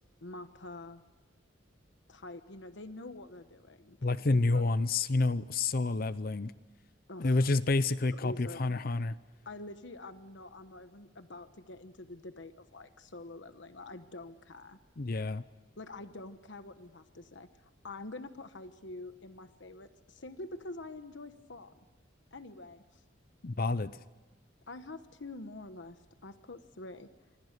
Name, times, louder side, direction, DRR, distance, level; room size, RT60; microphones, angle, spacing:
voice 1, 0.2-1.0 2.1-4.0 4.3-4.6 7.1-7.5 8.1-8.8 9.4-14.8 15.8-21.8 22.3-23.0 24.7-27.1, left 2 dB, 75° left, 10 dB, 1.2 m, -46 dB
voice 2, 4.0-6.5 7.2-9.1 15.0-15.4 23.4-23.9, left 3 dB, 50° left, 15 dB, 0.7 m, -29 dB
27.0 x 25.0 x 6.7 m, 1.2 s
head